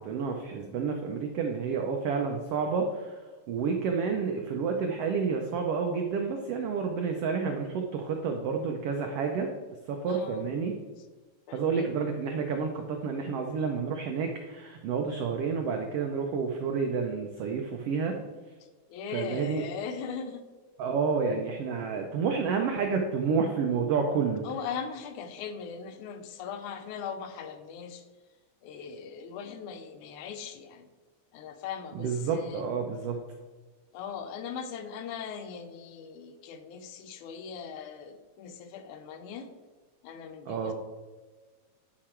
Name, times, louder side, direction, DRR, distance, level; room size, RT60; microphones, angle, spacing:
voice 1, 0.0-3.2 3.5-9.5 9.9-10.8 11.5-18.2 19.1-19.6 20.8-24.5 31.9-33.2 40.5-40.7, right 5 dB, 90° right, 3 dB, 1.3 m, -30 dB
voice 2, 10.1-10.5 11.5-11.9 18.9-20.4 24.4-28.0 28.6-30.9 31.3-32.7 33.9-39.5 40.0-40.7, left 6 dB, 80° left, 8 dB, 2.1 m, -39 dB
10.5 x 4.8 x 4.4 m, 1.3 s
omnidirectional pair, 3.6 m